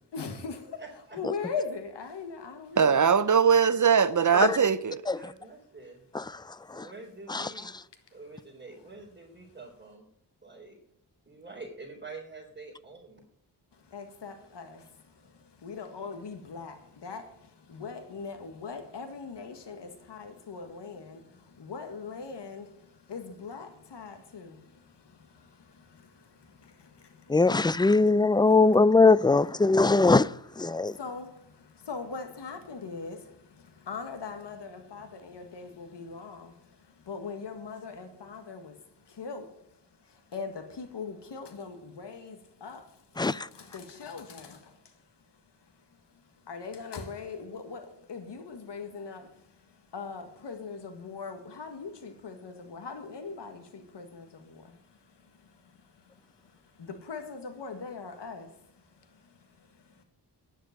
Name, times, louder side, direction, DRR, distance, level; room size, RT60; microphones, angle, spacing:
voice 1, 0.1-3.0 6.4-6.5 8.1-8.2 8.8-8.9 9.4-9.6 13.7-28.6 30.7-60.0, left 5 dB, 75° left, 1.7 m, -42 dB
voice 2, 0.8-1.2 4.9-6.1 6.7-7.7 8.1-10.1 10.4-10.8 11.3-13.2, right 3 dB, 25° right, 4.1 m, -46 dB
voice 3, 2.8-5.1, right 6 dB, 45° right, 0.7 m, -21 dB
voice 4, 6.1-6.9 7.3-7.5 27.3-31.0 43.2-43.5, left 3 dB, 10° left, 0.4 m, -22 dB
10.0 x 7.5 x 9.2 m
cardioid pair, 65°, 42 cm